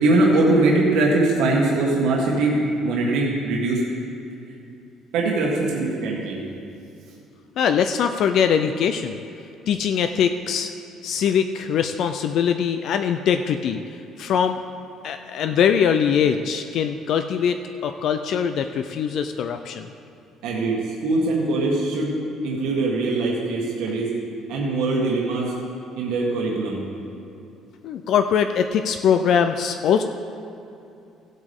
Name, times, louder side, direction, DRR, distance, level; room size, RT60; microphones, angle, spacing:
voice 1, 0.0-2.6 2.8-3.8 5.1-6.4 20.4-22.1 22.4-24.1 24.5-25.5 26.0-26.8, right 2 dB, 80° right, -3 dB, 1.6 m, -21 dB
voice 2, 7.6-9.2 9.7-10.7 11.0-14.6 15.0-19.9 27.8-30.0, left 7 dB, 50° left, 7 dB, 0.3 m, -22 dB
16.0 x 8.2 x 3.6 m, 2.7 s
cardioid pair, 170°, 0 cm